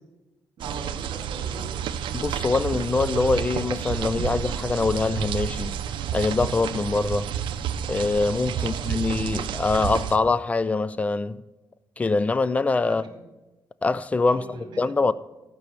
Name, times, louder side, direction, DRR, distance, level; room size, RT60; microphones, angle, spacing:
voice 1, 0.6-1.8 8.5-8.9 12.8-13.1 14.3-14.8, right 3 dB, 65° right, 2.6 m, -41 dB
sound 1, 0.6-10.2, right 9 dB, 85° right, 0.6 m, -30 dB
voice 2, 2.1-5.8 6.1-7.3 7.9-11.4 12.0-13.0 13.8-15.1, left 3 dB, 15° left, 0.3 m, -24 dB
15.0 x 5.4 x 6.8 m
cardioid pair, 155°, 8 cm